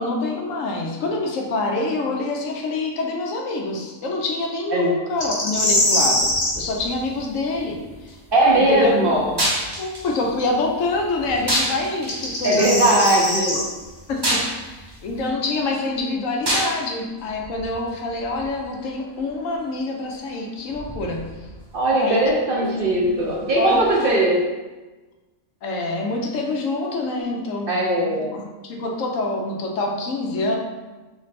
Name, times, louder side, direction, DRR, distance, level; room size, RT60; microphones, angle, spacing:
voice 1, 0.0-8.2 8.5-9.0 9.8-13.1 13.4-13.7 14.1-21.3 21.9-22.3 22.6-22.7 23.0-23.2 23.6-24.2 25.6-27.8 28.1-30.6, left 2 dB, 75° left, 1 dB, 1.1 m, -26 dB
sound 1, 5.2-6.6 9.7-9.8 11.9-13.6, left 1 dB, 45° left, 1.1 m, -22 dB
sound 2, 5.5-24.2, right 1 dB, 20° right, 0.9 m, -32 dB
voice 2, 8.3-9.3 12.4-13.5 21.7-24.4 27.7-28.4, right 1 dB, 55° right, -3 dB, 0.7 m, -19 dB
3.3 x 3.1 x 4.1 m, 1.2 s
omnidirectional pair, 1.4 m